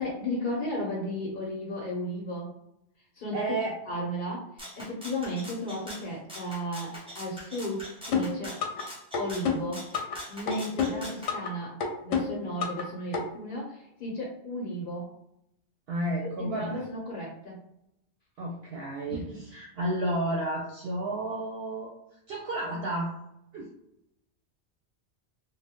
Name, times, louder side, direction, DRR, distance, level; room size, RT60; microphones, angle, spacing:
voice 1, 0.0-2.5 3.2-3.5 3.9-8.6 9.2-9.8 10.3-11.7 12.0-15.1 16.2-17.6 19.1-19.4, left 1 dB, 50° left, -4 dB, 0.9 m, -34 dB
voice 2, 3.3-3.8 15.9-16.8 18.4-21.9 22.3-23.1 23.5-23.7, right 1 dB, 65° right, -2 dB, 0.7 m, -31 dB
Rattle (instrument), 4.6-11.3, equal, 5° right, 0.9 m, -43 dB
sound 1, 8.1-8.8 9.1-10.2 10.5-11.5 11.8-12.8 13.1-13.2, left 6 dB, 85° left, 1.0 m, -28 dB
2.6 x 2.2 x 3.4 m, 0.81 s
omnidirectional pair, 1.2 m